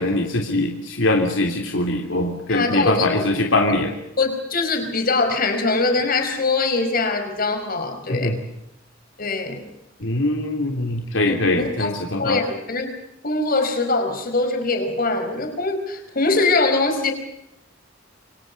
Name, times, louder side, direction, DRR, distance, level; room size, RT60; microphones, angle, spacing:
voice 1, 0.0-3.9 8.1-8.4 10.0-12.4, left 2 dB, 80° left, 2 dB, 3.1 m, -22 dB
voice 2, 2.5-3.3 4.2-8.3 9.2-9.7 11.3-11.9 12.2-12.9 13.2-17.1, left 3 dB, 50° left, 6 dB, 5.1 m, -22 dB
28.5 x 24.0 x 5.4 m, 0.85 s
head